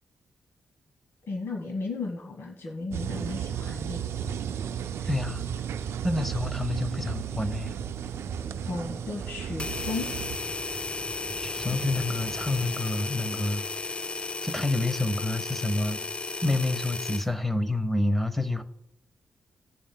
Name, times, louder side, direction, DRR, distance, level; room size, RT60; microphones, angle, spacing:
voice 1, 1.3-4.1 5.0-5.1 8.6-10.1, left 3 dB, 70° left, 1 dB, 1.4 m, -35 dB
sound 1, 2.9-10.4, right 9 dB, 85° right, 0.4 m, -34 dB
sound 2, 4.1-12.8, right 4 dB, 40° right, 1.1 m, -43 dB
voice 2, 5.1-5.4 6.0-7.8 11.4-13.7 14.4-16.0 16.4-18.6, left 2 dB, 5° left, 11 dB, 0.8 m, -28 dB
sound 3, 9.6-17.3, left 3 dB, 25° left, 0.3 m, -34 dB
18.5 x 7.0 x 2.2 m, 0.84 s
cardioid pair, 100°, 4 cm